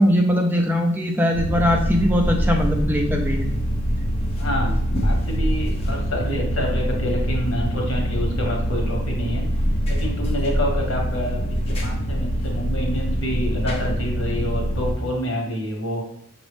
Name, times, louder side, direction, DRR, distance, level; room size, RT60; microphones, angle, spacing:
voice 1, 0.0-3.5, equal, 10° right, 2 dB, 0.5 m, -20 dB
sound 1, 1.3-14.9, equal, 30° left, 0.9 m, -24 dB
voice 2, 4.4-9.4 9.9-16.0, equal, 75° left, 0 dB, 1.3 m, -28 dB
5.9 x 2.6 x 3.4 m, 0.70 s
head